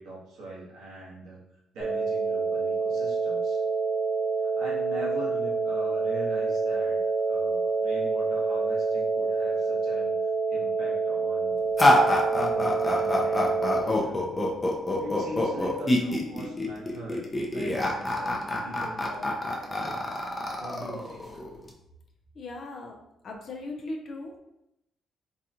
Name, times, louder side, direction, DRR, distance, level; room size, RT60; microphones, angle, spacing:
voice 1, 0.0-1.4 1.7-3.6 4.4-7.0 7.3-10.1 10.5-11.6 12.3-14.4 15.0-20.2 20.6-21.4, right 1 dB, 90° right, -5 dB, 1.3 m, -41 dB
sound 1, 1.8-13.8, right 4 dB, 20° right, 1.0 m, -27 dB
sound 2, 11.8-21.7, left 1 dB, 20° left, 0.7 m, -26 dB
voice 2, 22.4-22.9 23.2-24.4, left 2 dB, 55° left, 2 dB, 0.6 m, -38 dB
4.0 x 2.4 x 2.8 m, 0.84 s
cardioid pair, 90°, 0 cm